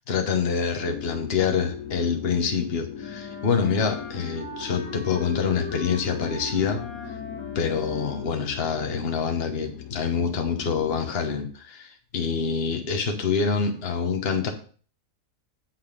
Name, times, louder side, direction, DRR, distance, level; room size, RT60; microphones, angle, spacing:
voice 1, 0.1-6.8 7.5-14.5, left 6 dB, 40° left, 5 dB, 1.3 m, -26 dB
sound 1, 0.9-11.1, left 9 dB, 70° left, 1.3 m, -39 dB
Wind instrument woodwind instrument, 3.0-8.5, left 2 dB, 10° left, 3.0 m, -40 dB
7.8 x 6.0 x 5.1 m, 0.43 s
omnidirectional pair, 1.6 m